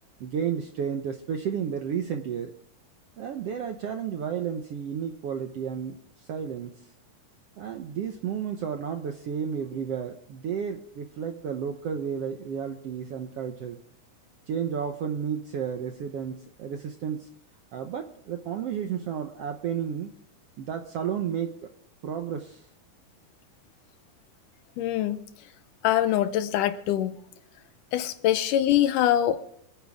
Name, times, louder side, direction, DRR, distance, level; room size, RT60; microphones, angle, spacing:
voice 1, 0.2-2.5 3.2-6.9 7.6-13.8 14.5-17.3 17.7-20.1 20.6-21.7 22.0-22.7, right 8 dB, 70° right, 1.5 m, -32 dB
voice 2, 24.8-25.2 25.8-27.2 27.9-29.6, left 12 dB, 80° left, 2.3 m, -24 dB
25.5 x 10.0 x 3.6 m
omnidirectional pair, 3.9 m